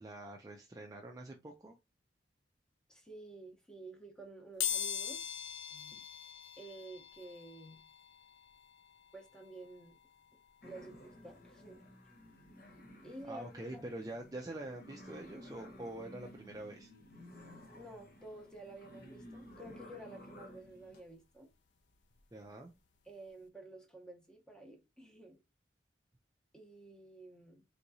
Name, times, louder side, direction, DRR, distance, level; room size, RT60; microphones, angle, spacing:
voice 1, 0.0-1.8 13.3-16.9 22.3-22.7, right 1 dB, 20° right, 0.4 m, -45 dB
voice 2, 2.9-5.2 5.7-6.0 6.6-7.8 9.1-10.0 10.6-11.8 13.0-13.8 17.7-21.5 23.0-25.4 26.5-27.6, right 2 dB, 5° left, 0.8 m, -51 dB
sound 1, 4.6-15.3 15.7-15.8 17.0-17.1 17.4-19.5 19.8-22.4 22.8-23.0 23.3-23.4, left 9 dB, 80° left, 0.5 m, -44 dB
sound 2, 10.6-21.0, equal, 50° left, 1.0 m, -54 dB
3.5 x 3.0 x 2.7 m
head